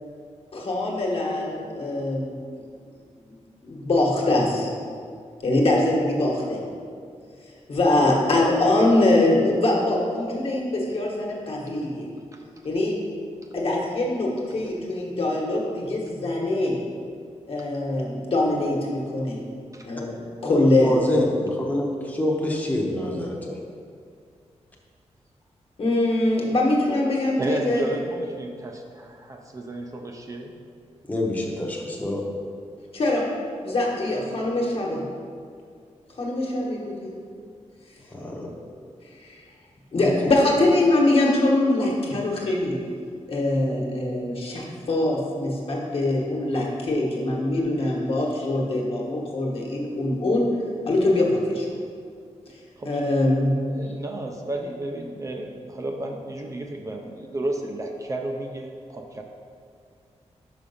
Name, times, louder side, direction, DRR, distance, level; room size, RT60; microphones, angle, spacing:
voice 1, 0.5-2.3 3.2-3.4 3.6-4.7 5.4-6.6 7.7-12.1 12.6-13.0 13.5-16.8 17.5-19.4 19.8-21.3 25.8-27.9 32.9-33.3 33.6-35.0 36.2-37.1 39.0-39.4 39.9-42.8 43.3-50.6 50.9-51.7 52.8-53.8, left 2 dB, 55° left, -2 dB, 1.2 m, -23 dB
voice 2, 20.4-23.6 31.1-32.2 38.1-38.5, left 1 dB, 15° left, -1 dB, 0.8 m, -26 dB
voice 3, 27.4-30.5 52.8-52.9 53.7-59.2, right 2 dB, 30° right, 2 dB, 0.5 m, -32 dB
5.8 x 5.1 x 5.4 m, 2.2 s
wide cardioid pair, 175°, 12 cm